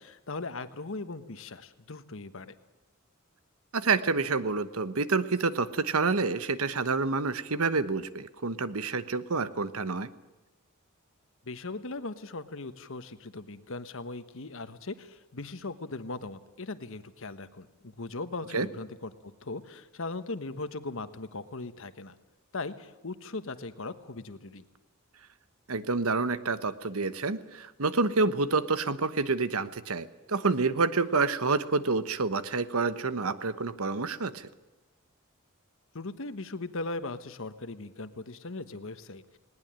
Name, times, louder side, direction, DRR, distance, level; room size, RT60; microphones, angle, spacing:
voice 1, 0.0-2.5 11.5-22.2 22.5-24.6 35.9-39.4, left 3 dB, 65° left, 11 dB, 1.3 m, -39 dB
voice 2, 3.7-10.1 18.5-18.7 25.7-34.5, right 4 dB, 90° right, 13 dB, 1.1 m, -28 dB
19.5 x 19.0 x 8.9 m, 1.1 s
head